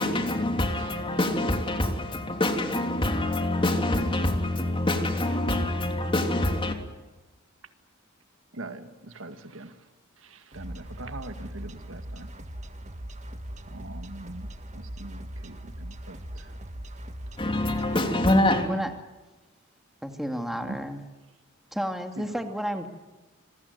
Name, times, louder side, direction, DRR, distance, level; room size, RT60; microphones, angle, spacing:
voice 1, 0.0-6.8 17.4-18.7, left 1 dB, 25° left, 3.3 m, -25 dB
voice 2, 8.5-9.8 10.2-12.3 13.7-16.5 20.6-20.8 22.2-22.4, right 2 dB, 75° right, 2.0 m, -42 dB
sound 1, 10.5-18.0, right 1 dB, 35° right, 1.6 m, -40 dB
voice 3, 20.0-21.0 21.7-22.9, equal, ahead, 2.3 m, -31 dB
26.5 x 22.0 x 9.5 m
head